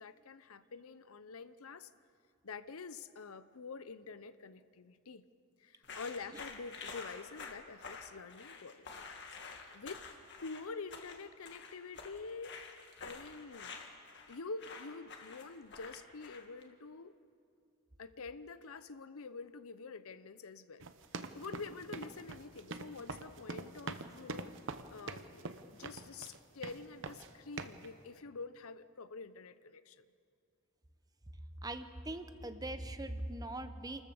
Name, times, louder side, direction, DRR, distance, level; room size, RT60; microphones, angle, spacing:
voice 1, 0.0-1.9 2.4-5.2 5.6-8.9 9.4-10.0 10.4-12.6 13.0-13.7 14.3-17.2 18.0-20.9 21.3-24.5 24.9-30.1, left 4 dB, 70° left, 13 dB, 0.7 m, -47 dB
sound 1, 5.8-16.6, left 5 dB, 50° left, 1.8 m, -49 dB
sound 2, 20.8-26.4 26.6-27.3 27.6-27.9, right 3 dB, 60° right, 0.9 m, -44 dB
voice 2, 31.6-34.0, right 1 dB, 15° right, 10 dB, 0.8 m, -41 dB
28.0 x 13.5 x 7.0 m, 2.4 s
head